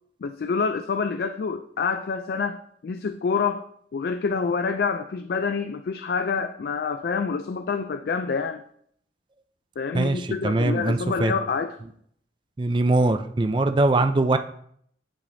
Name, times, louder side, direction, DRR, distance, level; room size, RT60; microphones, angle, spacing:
voice 1, 0.2-3.6 3.9-8.6 9.8-11.8, left 5 dB, 55° left, 9 dB, 0.3 m, -27 dB
voice 2, 9.9-11.3 12.6-14.4, right 2 dB, 25° right, 8 dB, 0.4 m, -22 dB
10.0 x 5.0 x 2.7 m, 0.66 s
head